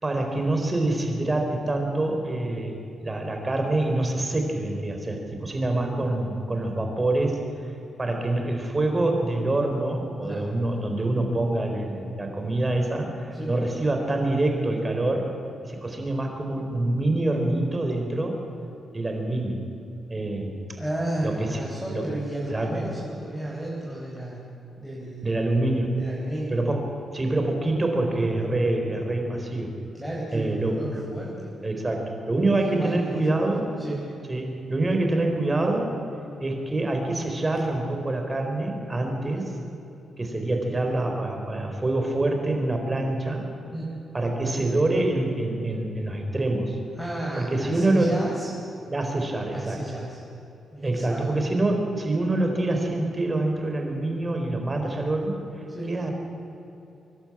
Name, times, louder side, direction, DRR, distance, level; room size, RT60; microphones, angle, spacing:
voice 1, 0.0-2.8 3.0-7.4 8.0-15.3 15.6-18.4 18.9-19.6 20.1-20.6 21.2-21.6 21.9-22.0 22.5-22.7 25.2-25.9 26.5-29.7 30.3-31.0 31.6-33.7 34.3-36.0 36.4-39.5 40.2-43.5 44.1-46.8 47.4-48.2 48.9-49.8 50.8-55.4 55.9-56.1, right 2 dB, 25° right, 3 dB, 4.3 m, -26 dB
voice 2, 10.2-10.5 13.3-13.5 20.8-24.5 24.8-25.4 26.0-26.5 29.9-31.5 32.6-33.5 33.8-34.0 43.7-43.9 46.9-48.5 49.5-50.2 50.7-51.3 55.7-55.9, right 1 dB, ahead, -6 dB, 5.0 m, -33 dB
24.5 x 12.0 x 8.9 m, 2.8 s
cardioid pair, 70°, 0 cm